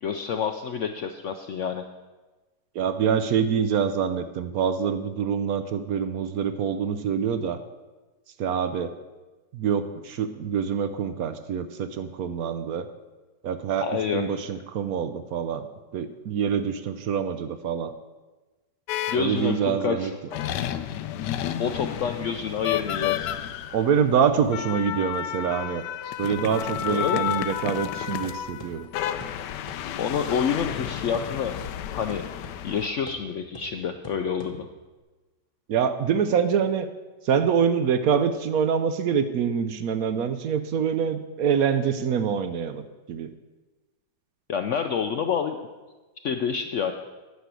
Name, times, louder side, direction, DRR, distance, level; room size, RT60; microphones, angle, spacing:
voice 1, 0.0-1.8 13.8-14.2 19.1-20.4 21.6-23.3 26.0-26.2 26.9-27.4 30.0-32.3 32.6-34.7 44.5-45.6 46.2-46.9, left 7 dB, 70° left, 6 dB, 0.7 m, -28 dB
voice 2, 2.7-7.6 8.4-8.9 9.5-12.9 13.4-13.9 14.1-15.7 15.9-17.9 19.1-20.1 23.7-25.8 26.2-28.9 35.7-36.9 37.2-42.8 43.1-43.3, right 7 dB, 70° right, 10 dB, 1.0 m, -25 dB
sound 1, 18.9-19.7 20.3-32.9, left 11 dB, 85° left, 1.2 m, -31 dB
sound 2, 27.3-35.0, equal, 20° left, 0.7 m, -46 dB
9.9 x 6.2 x 8.1 m, 1.2 s
omnidirectional pair, 1.8 m